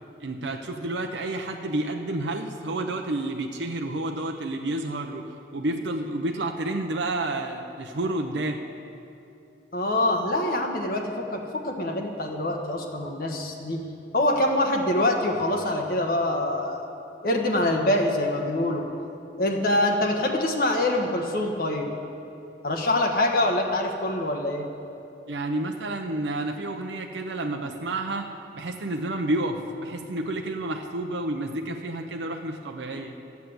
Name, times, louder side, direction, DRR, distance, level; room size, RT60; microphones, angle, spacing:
voice 1, 0.2-5.3 5.5-8.6 25.3-28.3 28.5-33.2, right 2 dB, 90° right, 3 dB, 0.8 m, -30 dB
voice 2, 9.7-13.8 14.1-16.8 17.2-18.9 19.4-21.9 22.6-24.6, left 1 dB, 55° left, 2 dB, 1.3 m, -25 dB
13.5 x 8.3 x 7.8 m, 2.7 s
head